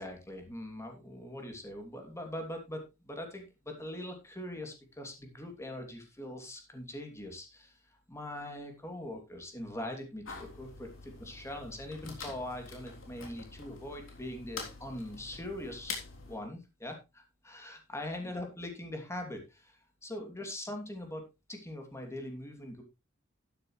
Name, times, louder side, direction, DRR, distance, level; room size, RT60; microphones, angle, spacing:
voice 1, 0.0-16.0 16.3-21.2 21.5-22.8, left 1 dB, 15° left, 3 dB, 2.8 m, -42 dB
sound 1, 10.2-16.4, left 4 dB, 80° left, 3.4 m, -45 dB
12.0 x 9.9 x 3.2 m, 0.26 s
head